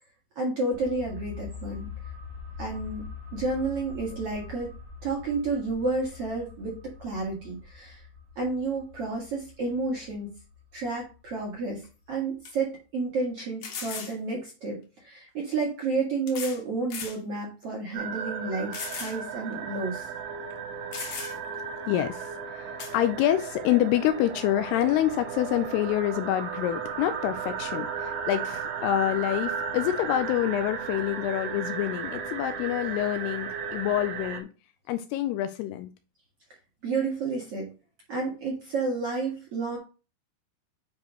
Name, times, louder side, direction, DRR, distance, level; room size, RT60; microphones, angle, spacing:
voice 1, 0.4-1.9 2.6-3.0 3.3-4.7 5.0-8.0 8.4-10.3 10.7-20.1 36.8-37.7 38.1-39.8, right 3 dB, 50° right, -2 dB, 2.0 m, -31 dB
sound 1, 0.7-12.1 12.4-12.5, left 5 dB, 65° right, 3.0 m, -44 dB
sound 2, 11.8-11.9 12.5-12.6 13.6-14.2 15.3-15.4 16.3-16.6 16.9-17.2 17.7-17.8 18.7-19.2 19.5-19.6 20.5-20.6 20.9-21.6 22.8-23.0, left 6 dB, 65° left, 2.8 m, -37 dB
sound 3, 17.9-34.4, right 6 dB, 90° right, 3.3 m, -35 dB
voice 2, 21.9-34.5 34.9-35.9, left 12 dB, 80° left, 10 dB, 2.5 m, -27 dB
9.4 x 4.8 x 3.1 m, 0.32 s
omnidirectional pair, 4.9 m